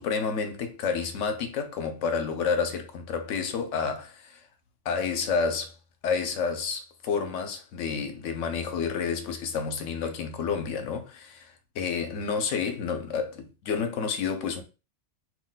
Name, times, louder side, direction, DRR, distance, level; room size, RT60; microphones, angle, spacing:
voice 1, 0.0-4.4 4.9-5.7 6.0-14.6, left 5 dB, 80° left, 1.0 m, -30 dB
2.6 x 2.1 x 3.8 m
omnidirectional pair, 1.3 m